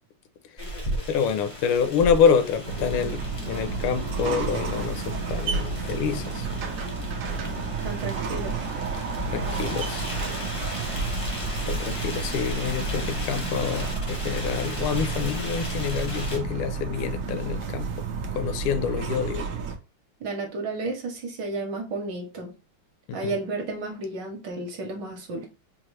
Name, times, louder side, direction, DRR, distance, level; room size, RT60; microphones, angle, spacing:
sound 1, 0.6-16.4, equal, 35° left, 0.5 m, -36 dB
voice 1, 1.1-6.5 9.0-9.1 9.3-10.1 11.6-17.9 18.3-19.5 23.1-23.3, left 7 dB, 80° left, 1.4 m, -27 dB
sound 2, 2.6-19.7, right 4 dB, 80° right, 0.7 m, -31 dB
voice 2, 7.8-8.6 20.2-22.5 23.1-25.5, right 2 dB, 60° right, 1.4 m, -32 dB
4.8 x 2.3 x 3.0 m
omnidirectional pair, 2.4 m